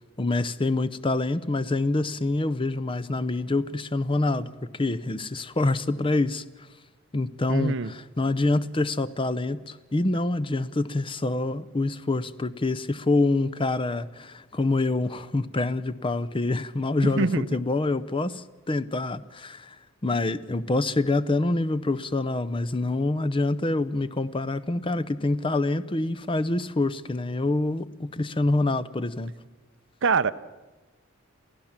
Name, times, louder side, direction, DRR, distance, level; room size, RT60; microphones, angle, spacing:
voice 1, 0.2-6.4 7.1-19.8 20.0-29.3, left 2 dB, 25° left, 0.7 m, -26 dB
voice 2, 7.5-7.9 17.0-17.5 30.0-30.3, right 4 dB, 60° right, 0.7 m, -24 dB
28.5 x 15.5 x 7.4 m
head